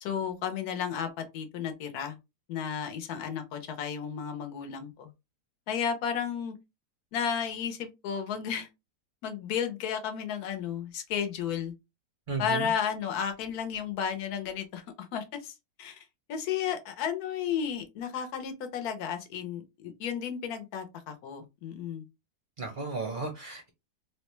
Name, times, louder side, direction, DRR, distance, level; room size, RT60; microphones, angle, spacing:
voice 1, 0.0-2.2 2.5-5.1 5.7-6.5 7.1-8.7 9.2-11.7 12.4-15.5 15.8-22.1, left 8 dB, 70° left, 1.2 m, -33 dB
voice 2, 12.3-12.7 22.6-23.7, right 4 dB, 50° right, 0.6 m, -34 dB
3.7 x 2.2 x 3.0 m
omnidirectional pair, 1.7 m